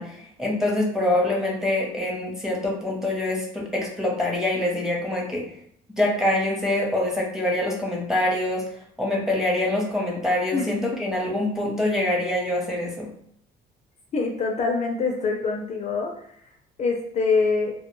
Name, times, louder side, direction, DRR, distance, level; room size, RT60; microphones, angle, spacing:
voice 1, 0.0-5.4 6.0-8.6 9.0-13.1, left 1 dB, 5° right, -2 dB, 0.7 m, -25 dB
voice 2, 14.1-16.1 16.8-17.7, left 4 dB, 40° left, 1 dB, 0.4 m, -24 dB
2.2 x 2.2 x 3.0 m, 0.67 s
cardioid pair, 110°, 17 cm